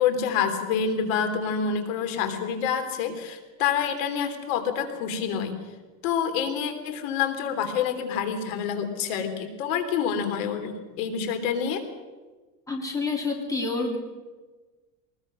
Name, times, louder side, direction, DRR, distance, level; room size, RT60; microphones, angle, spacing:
voice 1, 0.0-5.6 6.0-11.8, left 7 dB, 65° left, 8 dB, 3.3 m, -27 dB
voice 2, 12.7-14.0, left 3 dB, 10° left, 1 dB, 3.0 m, -28 dB
23.0 x 20.5 x 6.3 m, 1.3 s
supercardioid pair, 155°, 43 cm